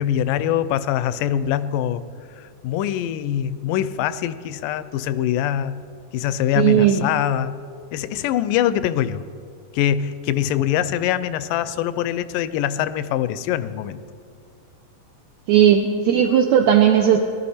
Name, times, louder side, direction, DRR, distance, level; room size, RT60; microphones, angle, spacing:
voice 1, 0.0-2.0 2.4-5.9 6.1-7.6 7.9-9.2 9.7-14.0, left 10 dB, 90° left, 14 dB, 2.2 m, -23 dB
voice 2, 6.6-7.1 15.5-17.2, right 9 dB, 80° right, 4 dB, 1.6 m, -16 dB
19.5 x 12.0 x 4.2 m, 2.2 s
omnidirectional pair, 3.8 m